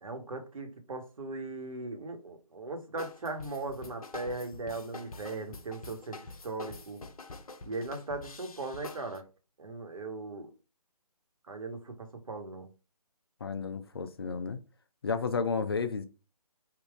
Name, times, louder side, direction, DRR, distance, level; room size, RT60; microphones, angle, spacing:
voice 1, 0.0-7.0 7.6-9.2 9.6-10.5 11.5-12.7, right 2 dB, 60° right, 1.4 m, -38 dB
sound 1, 3.0-9.2, left 3 dB, 65° left, 0.8 m, -46 dB
voice 2, 13.4-14.6 15.0-16.0, left 5 dB, 40° left, 0.5 m, -32 dB
3.7 x 2.6 x 4.7 m
figure-of-eight pair, 155°, 19 cm